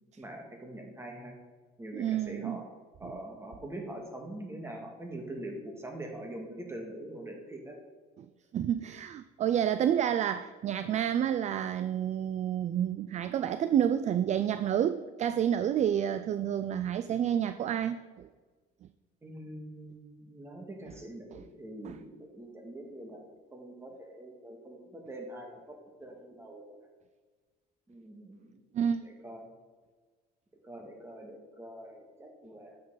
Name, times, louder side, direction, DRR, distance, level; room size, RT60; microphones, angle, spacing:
voice 1, 0.2-1.4 1.8-2.6 3.0-7.8 19.2-23.2 23.5-26.6 27.9-28.5 29.0-29.5 30.6-32.8, right 1 dB, 15° right, 2 dB, 1.9 m, -44 dB
voice 2, 1.9-2.6 3.0-3.1 8.5-18.3 21.3-21.4 21.8-22.0 28.7-29.1, right 9 dB, 45° right, 11 dB, 0.4 m, -29 dB
9.1 x 6.6 x 3.9 m, 1.4 s
cardioid pair, 110°, 17 cm